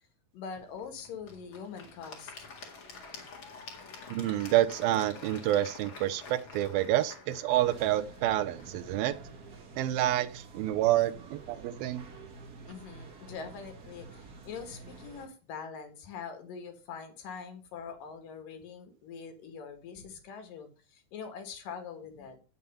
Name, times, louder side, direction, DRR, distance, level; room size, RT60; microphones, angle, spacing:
voice 1, 0.3-2.5 12.7-22.4, left 6 dB, 65° left, 7 dB, 3.0 m, -43 dB
Applause / Crowd, 0.5-9.6, left 4 dB, 40° left, 2.3 m, -49 dB
voice 2, 4.1-9.2 9.8-12.0, right 13 dB, 80° right, 14 dB, 2.4 m, -28 dB
sound 1, 7.5-15.3, right 3 dB, 45° right, 1.2 m, -49 dB
9.2 x 7.0 x 5.4 m, 0.33 s
omnidirectional pair, 4.4 m